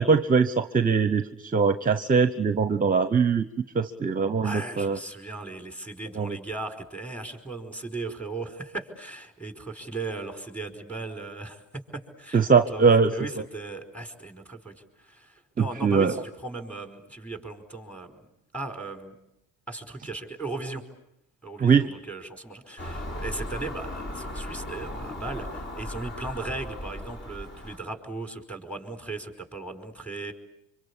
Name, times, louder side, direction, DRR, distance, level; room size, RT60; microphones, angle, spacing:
voice 1, 0.0-3.4 3.7-5.0 6.2-6.4 12.3-13.4 15.8-16.1 21.6-21.9, right 5 dB, 20° right, 12 dB, 1.0 m, -22 dB
voice 2, 4.4-18.2 18.5-19.1 19.7-20.8 21.4-30.3, right 3 dB, 5° left, 6 dB, 4.9 m, -37 dB
Car passing by / Engine, 22.8-27.8, left 1 dB, 30° left, 3.7 m, -37 dB
25.5 x 25.5 x 8.4 m, 0.82 s
supercardioid pair, 90°, 37 cm